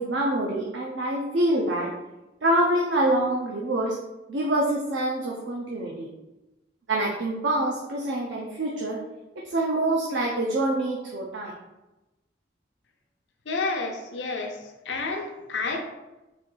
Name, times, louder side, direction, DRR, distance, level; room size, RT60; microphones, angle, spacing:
voice 1, 0.0-1.9 2.4-3.9 4.3-6.1 6.9-9.0 9.5-11.5, right 1 dB, 85° right, -2 dB, 0.6 m, -25 dB
voice 2, 13.5-14.6 14.9-15.8, left 3 dB, 80° left, 3 dB, 0.6 m, -30 dB
4.2 x 2.7 x 3.8 m, 1.0 s
head